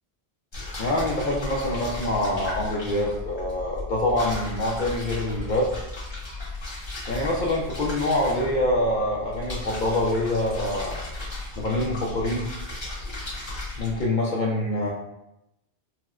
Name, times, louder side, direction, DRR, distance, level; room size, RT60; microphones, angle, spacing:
sound 1, 0.5-14.1, left 2 dB, 25° left, 0.8 m, -35 dB
voice 1, 0.8-5.7 7.1-11.0 11.6-12.5 13.8-14.9, left 1 dB, 60° left, -3 dB, 0.5 m, -25 dB
4.1 x 2.1 x 2.3 m, 0.89 s
omnidirectional pair, 1.1 m